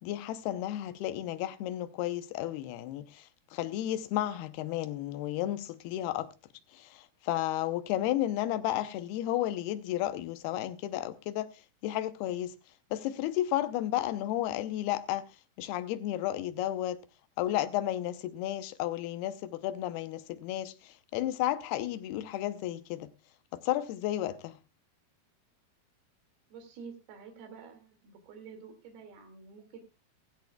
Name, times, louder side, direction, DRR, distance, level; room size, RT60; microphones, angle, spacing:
voice 1, 0.0-6.3 6.7-11.5 11.8-12.5 12.9-15.2 15.6-17.0 17.4-23.1 23.5-24.6, left 13 dB, 80° left, 2.8 m, -33 dB
voice 2, 26.5-29.8, right 5 dB, 75° right, 4.2 m, -49 dB
16.5 x 15.5 x 2.3 m
omnidirectional pair, 4.5 m